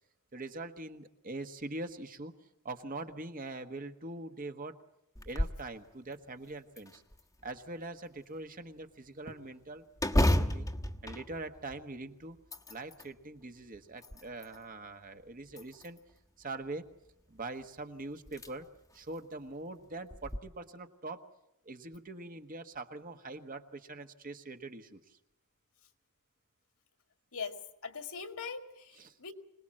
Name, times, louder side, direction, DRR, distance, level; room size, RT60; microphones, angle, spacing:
voice 1, 0.3-2.3 2.6-4.8 5.2-7.0 7.4-9.9 10.3-10.7 11.0-12.4 12.7-16.0 16.4-16.8 17.3-18.7 18.9-21.2 21.6-25.2 29.0-29.1, right 2 dB, 40° right, 7 dB, 1.4 m, -43 dB
sound 1, 5.1-5.7 6.1-6.2 6.8-7.6 10.0-12.0 12.4-13.1 13.7-14.6 15.5-16.2 17.6-17.7 18.3-18.5 18.9-19.0 20.1-20.4, left 1 dB, 15° left, 1.2 m, -32 dB
voice 2, 27.8-29.3, left 5 dB, 65° left, 6 dB, 2.2 m, -41 dB
25.5 x 19.0 x 7.6 m, 0.85 s
head